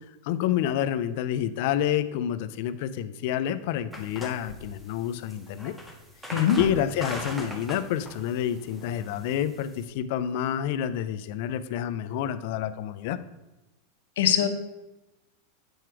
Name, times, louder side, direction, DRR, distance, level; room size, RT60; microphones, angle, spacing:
voice 1, 0.2-5.8 6.2-13.2, left 10 dB, 50° left, 13 dB, 0.4 m, -28 dB
sound 1, 3.9-9.9, equal, 5° right, 0.8 m, -40 dB
voice 2, 14.2-14.5, left 10 dB, 85° left, 7 dB, 0.8 m, -21 dB
7.8 x 4.6 x 4.7 m, 1.0 s
supercardioid pair, 165°, 0 cm